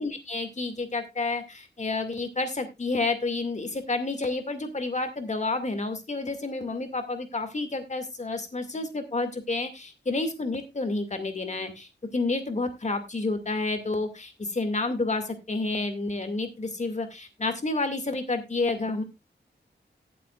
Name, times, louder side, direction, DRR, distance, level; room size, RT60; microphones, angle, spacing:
voice 1, 0.0-19.0, left 3 dB, 40° left, 7 dB, 2.2 m, -30 dB
18.5 x 7.7 x 2.4 m, 0.23 s
wide cardioid pair, 120°, 18 cm